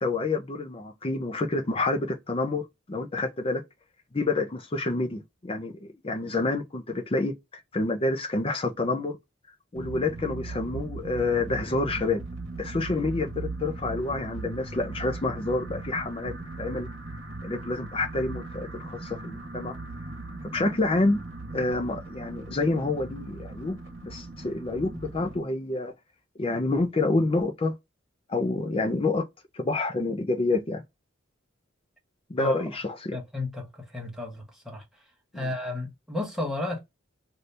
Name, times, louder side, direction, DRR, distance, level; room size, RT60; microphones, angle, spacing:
voice 1, 0.0-2.6 2.9-3.6 4.1-9.2 9.7-12.2 12.6-16.9 17.4-19.8 20.4-21.2 21.5-25.9 26.4-27.7 28.3-29.3 29.5-30.8 32.3-33.2 35.3-35.5, left 2 dB, 30° left, 0.5 m, -28 dB
sound 1, 9.7-25.4, right 2 dB, 70° right, 1.0 m, -39 dB
voice 2, 33.1-34.8 35.3-36.8, left 2 dB, ahead, 1.2 m, -33 dB
2.7 x 2.7 x 3.3 m
head